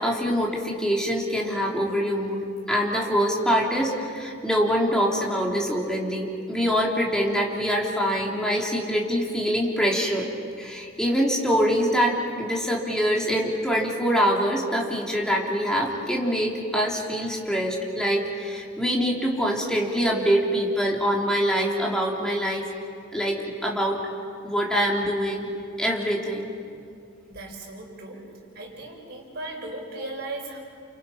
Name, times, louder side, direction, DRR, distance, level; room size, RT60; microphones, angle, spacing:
voice 1, 0.0-2.4 2.7-10.3 10.6-22.7 23.1-24.0 24.4-25.5 25.8-26.5, equal, 5° left, -2 dB, 3.5 m, -24 dB
voice 2, 27.3-28.3 28.5-30.6, right 2 dB, 50° right, -1 dB, 6.0 m, -37 dB
29.5 x 29.0 x 5.8 m, 2.4 s
head